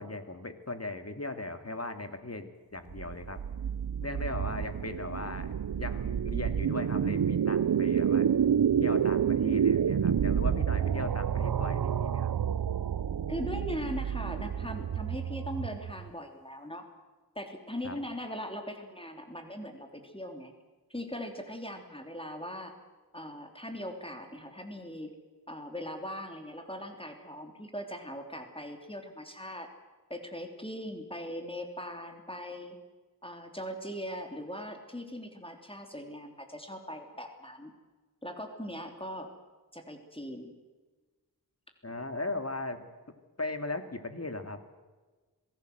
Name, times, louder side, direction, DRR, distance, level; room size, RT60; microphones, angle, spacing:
voice 1, 0.0-3.4 4.0-8.3 8.8-12.3 17.8-18.0 41.8-42.8 43.4-44.6, left 2 dB, 40° left, 8 dB, 2.5 m, -38 dB
sound 1, 2.9-16.1, right 8 dB, 70° right, 0.7 m, -29 dB
voice 2, 13.3-16.8 17.3-20.5 20.9-22.7 23.1-25.1 25.5-29.7 30.1-32.8 33.2-37.7 38.2-39.3 39.7-40.5, equal, 15° left, 4 dB, 3.2 m, -40 dB
26.5 x 18.0 x 8.0 m, 1.3 s
wide cardioid pair, 50°, 37 cm